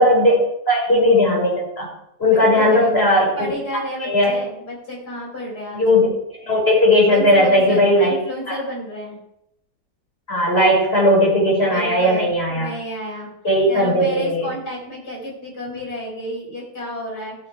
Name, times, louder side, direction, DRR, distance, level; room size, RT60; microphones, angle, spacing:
voice 1, 0.0-1.9 2.2-3.5 4.0-4.3 5.7-6.1 6.4-8.2 10.3-12.7 13.4-14.5, left 1 dB, 35° left, -4 dB, 6.1 m, -17 dB
voice 2, 2.3-3.1 3.4-5.8 7.1-9.2 11.6-13.3 13.7-17.4, left 1 dB, 75° left, -4 dB, 6.0 m, -31 dB
16.0 x 7.4 x 4.7 m, 0.80 s
omnidirectional pair, 1.8 m